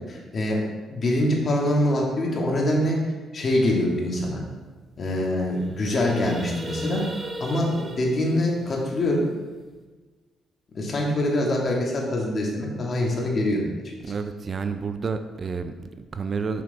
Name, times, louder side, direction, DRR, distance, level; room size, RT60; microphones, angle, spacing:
voice 1, 0.1-0.6 0.9-3.0 3.3-4.4 5.0-7.0 7.4-9.2 10.7-13.6, left 1 dB, 45° left, -1 dB, 1.8 m, -24 dB
sound 1, 4.5-4.6 4.8-5.1 5.4-9.8, right 1 dB, 25° right, 1.0 m, -39 dB
voice 2, 14.0-16.6, right 5 dB, 40° right, 9 dB, 0.4 m, -30 dB
6.2 x 5.8 x 4.0 m, 1.3 s
cardioid pair, 90°, 0 cm